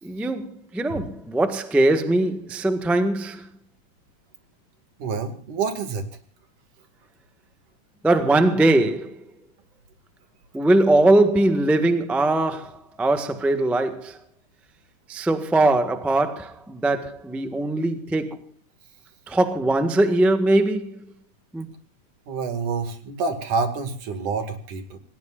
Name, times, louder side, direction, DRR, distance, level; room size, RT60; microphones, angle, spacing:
voice 1, 0.0-3.5 8.0-9.3 10.5-14.2 15.1-18.5 19.3-21.0 21.5-21.7, right 2 dB, ahead, 0.5 m, -21 dB
voice 2, 5.0-6.1 22.3-25.0, right 4 dB, 75° right, 3.8 m, -28 dB
28.0 x 19.5 x 2.5 m
omnidirectional pair, 3.6 m